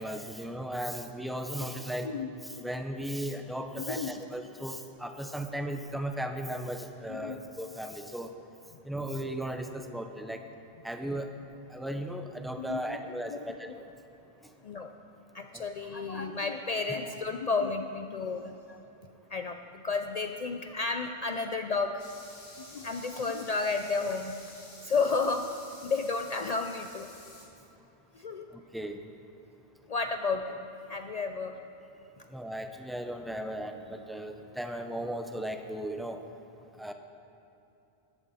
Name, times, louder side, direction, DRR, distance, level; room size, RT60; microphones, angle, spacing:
voice 1, 0.0-2.1 2.6-8.3 8.9-10.4 10.8-11.3 11.7-13.8 28.7-29.0 32.3-36.2 36.8-36.9, right 1 dB, ahead, 5 dB, 0.4 m, -36 dB
voice 2, 3.8-4.1 7.1-7.4 12.6-13.0 13.3-13.8 14.6-14.9 15.3-18.8 19.3-19.6 19.8-22.0 22.6-24.3 24.8-25.5 25.8-27.1 28.1-28.5 29.9-31.6, left 4 dB, 50° left, 6 dB, 0.5 m, -32 dB
sound 1, 22.0-27.5, left 2 dB, 80° left, 2.0 m, -50 dB
14.0 x 11.5 x 4.2 m, 2.9 s
omnidirectional pair, 1.0 m